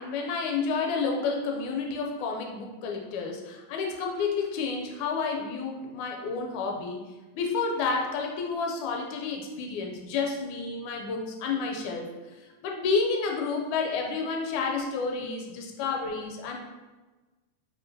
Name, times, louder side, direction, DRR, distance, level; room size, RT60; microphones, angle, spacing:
voice 1, 0.0-7.0 7.3-12.1 12.6-16.6, left 4 dB, 85° left, 1 dB, 1.9 m, -30 dB
4.9 x 2.8 x 2.6 m, 1.2 s
omnidirectional pair, 3.4 m